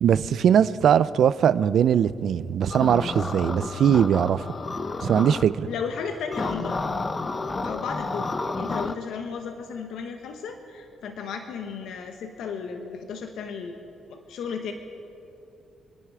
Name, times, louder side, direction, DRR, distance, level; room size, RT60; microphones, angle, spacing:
voice 1, 0.0-4.5 5.0-5.7, right 8 dB, 65° right, 16 dB, 0.5 m, -21 dB
sound 1, 2.7-5.4 6.3-8.9, left 3 dB, 30° left, 0.7 m, -30 dB
voice 2, 5.7-6.8 7.6-13.8 14.1-14.7, left 6 dB, 75° left, 5 dB, 1.2 m, -34 dB
28.0 x 9.9 x 4.9 m, 2.6 s
cardioid pair, 90°, 0 cm